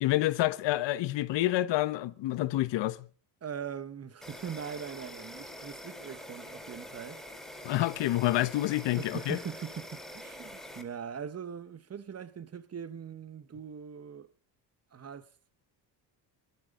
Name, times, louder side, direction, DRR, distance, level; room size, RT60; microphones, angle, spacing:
voice 1, 0.0-3.0 7.6-9.4, left 16 dB, 75° left, 1.1 m, -28 dB
voice 2, 3.4-7.2 9.0-14.3 14.9-15.3, right 7 dB, 35° right, 1.1 m, -41 dB
Insect, 4.2-10.8, equal, ahead, 4.2 m, -45 dB
22.0 x 14.0 x 3.8 m
cardioid pair, 100°, 44 cm